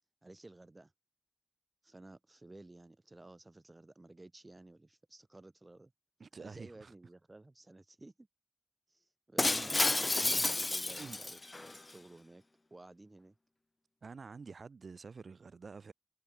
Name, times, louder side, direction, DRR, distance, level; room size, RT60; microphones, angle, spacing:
voice 1, 0.2-0.9 1.8-5.9 6.4-8.3 8.9-9.7 10.2-12.4 12.7-13.3, right 2 dB, 35° right, 5.7 m, -55 dB
voice 2, 6.2-6.9 9.5-9.7 10.2-10.6 11.0-11.2 14.0-15.9, right 4 dB, 85° right, 4.3 m, -48 dB
Shatter, 9.4-11.8, left 2 dB, 35° left, 0.4 m, -31 dB
wide cardioid pair, 70°, 0 cm